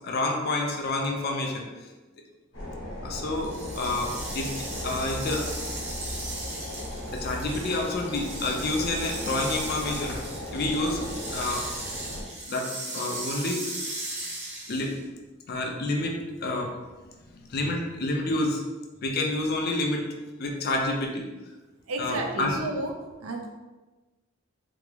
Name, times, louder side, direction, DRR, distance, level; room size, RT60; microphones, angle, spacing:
voice 1, 0.0-1.7 3.0-4.5 4.8-5.5 7.1-10.2 10.5-11.0 11.3-11.7 12.5-12.7 12.9-13.6 14.7-15.0 15.5-16.7 17.4-18.6 19.0-20.0 20.4-21.3 22.0-22.6, left 2 dB, 50° left, 1 dB, 0.5 m, -28 dB
sound 1, 2.5-12.2, left 1 dB, 75° left, 1.0 m, -37 dB
sound 2, 3.4-15.0, right 2 dB, 35° right, 0.6 m, -37 dB
voice 2, 21.9-23.5, right 2 dB, 85° right, 2 dB, 0.5 m, -32 dB
3.4 x 2.0 x 3.2 m, 1.2 s
head